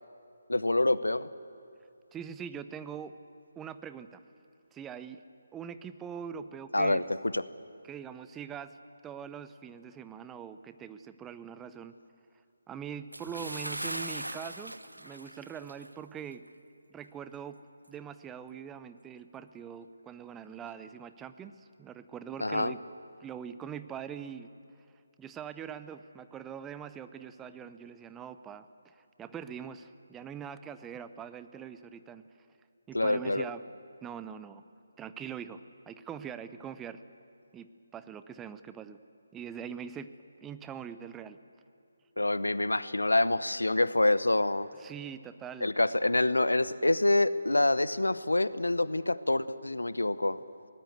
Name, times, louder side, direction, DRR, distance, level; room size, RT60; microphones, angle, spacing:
voice 1, 0.5-1.3 6.7-7.0 7.3-7.4 22.4-22.7 32.9-33.4 42.2-44.7 45.6-50.4, left 2 dB, 80° left, 16 dB, 0.8 m, -26 dB
voice 2, 2.1-3.2 3.6-4.2 4.7-5.2 5.5-7.1 7.8-8.8 9.0-11.9 12.7-16.4 16.9-17.6 17.9-22.8 23.2-24.5 25.2-32.2 32.9-33.6 34.0-34.6 35.0-35.6 35.9-37.0 37.5-39.0 39.3-40.1 40.4-41.4 44.8-45.7, right 8 dB, 10° right, 12 dB, 0.6 m, -43 dB
Bathtub (filling or washing) / Splash splatter, 13.1-16.0 16.3-16.5 17.0-17.1, right 1 dB, 90° right, 0.8 m, -39 dB
23.5 x 18.5 x 8.1 m, 2.5 s
figure-of-eight pair, 150°, 0 cm